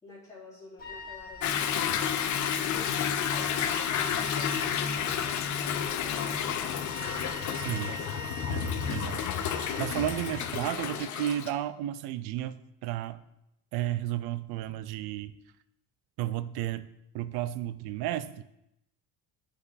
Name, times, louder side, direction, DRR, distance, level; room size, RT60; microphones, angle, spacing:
voice 1, 0.0-2.2 2.6-8.7, left 3 dB, 10° left, -10 dB, 3.1 m, -50 dB
Wind instrument woodwind instrument, 0.8-10.9, left 1 dB, 25° left, 1.4 m, -42 dB
Toilet flush / Drip / Trickle dribble, 1.4-11.5, left 8 dB, 50° left, 0.6 m, -31 dB
voice 2, 7.6-7.9 8.5-9.2 9.6-12.6 12.8-13.2 13.7-15.4 16.2-16.9 17.1-18.4, right 12 dB, 80° right, 14 dB, 0.6 m, -33 dB
7.3 x 5.5 x 4.1 m, 0.84 s
cardioid pair, 160°, 38 cm